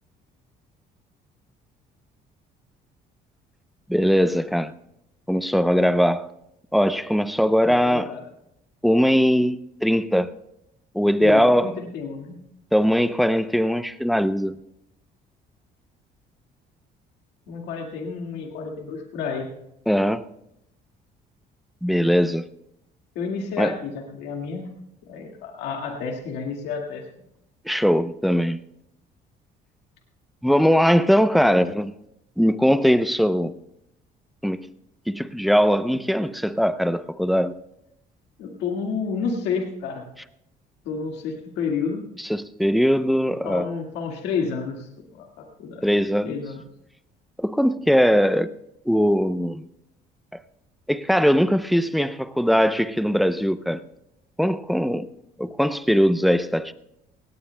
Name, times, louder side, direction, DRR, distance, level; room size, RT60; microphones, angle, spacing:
voice 1, 3.9-4.7 5.3-6.3 6.7-8.1 8.8-10.3 10.9-11.8 12.7-14.5 19.9-20.3 21.8-22.5 23.6-23.8 27.7-28.6 30.4-31.9 32.4-33.5 34.4-34.7 35.1-37.5 42.3-43.7 45.8-46.3 47.4-48.5 48.9-49.7 50.9-53.8 54.4-55.1 55.4-56.7, equal, ahead, 0.6 m, -20 dB
voice 2, 7.6-8.2 11.2-12.4 17.5-19.5 23.2-24.7 25.0-27.0 38.4-40.1 40.9-42.1 43.4-45.8 46.2-46.6, left 5 dB, 90° left, 1.9 m, -30 dB
18.0 x 17.5 x 2.2 m
cardioid pair, 110°, 17 cm